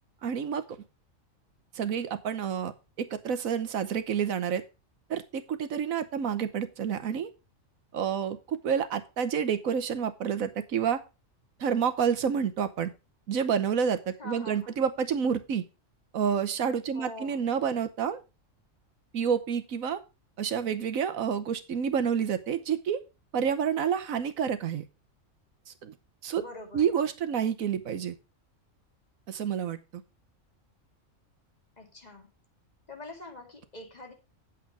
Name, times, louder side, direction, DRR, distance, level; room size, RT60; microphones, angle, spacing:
voice 1, 0.2-0.6 1.7-2.7 3.0-4.6 5.1-7.3 7.9-11.0 11.6-12.9 13.3-15.6 16.1-18.2 19.1-20.0 20.4-23.0 23.3-24.8 25.8-25.9 26.2-26.4 26.7-28.2 29.3-30.0, right 7 dB, 85° right, 10 dB, 1.4 m, -29 dB
voice 2, 14.2-14.8 16.9-17.5 26.3-27.0 31.8-32.3 32.9-34.1, left 2 dB, 30° left, 3 dB, 2.3 m, -44 dB
8.7 x 7.4 x 4.6 m, 0.28 s
omnidirectional pair, 1.4 m